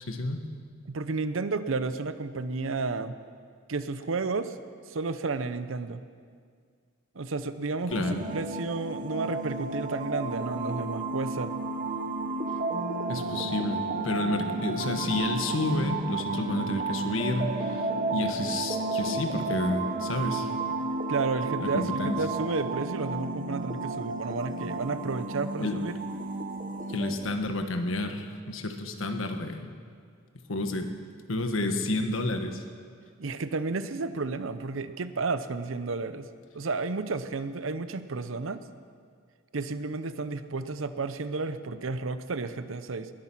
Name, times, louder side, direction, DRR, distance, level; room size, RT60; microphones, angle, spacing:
voice 1, 0.1-0.4 7.9-8.2 13.1-20.5 21.6-22.2 25.6-25.8 26.9-29.7 30.5-30.9 31.3-32.6, left 2 dB, 80° left, 6 dB, 1.3 m, -30 dB
voice 2, 0.9-3.1 3.7-4.6 4.9-6.0 7.1-11.5 21.1-25.9 33.2-36.3 36.5-38.6 39.5-43.1, right 3 dB, 75° right, 12 dB, 0.7 m, -32 dB
sound 1, 7.9-27.1, right 3 dB, 40° right, 1.3 m, -32 dB
20.5 x 9.8 x 6.1 m, 2.1 s
head